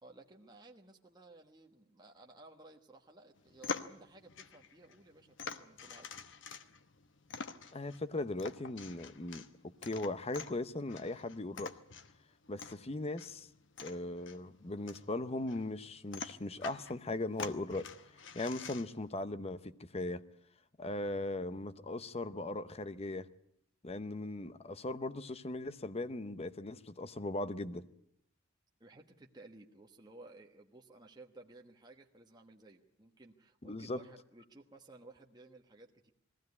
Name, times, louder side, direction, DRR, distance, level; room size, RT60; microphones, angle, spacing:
voice 1, 0.0-6.1 28.8-36.1, right 2 dB, 20° right, 1.3 m, -57 dB
sound 1, 3.4-19.1, left 5 dB, 65° left, 1.1 m, -47 dB
voice 2, 7.7-11.7 12.5-13.5 13.8-17.9 18.3-20.2 20.8-23.3 23.8-27.9 33.6-34.0, left 2 dB, 30° left, 0.8 m, -39 dB
21.0 x 16.0 x 9.6 m
head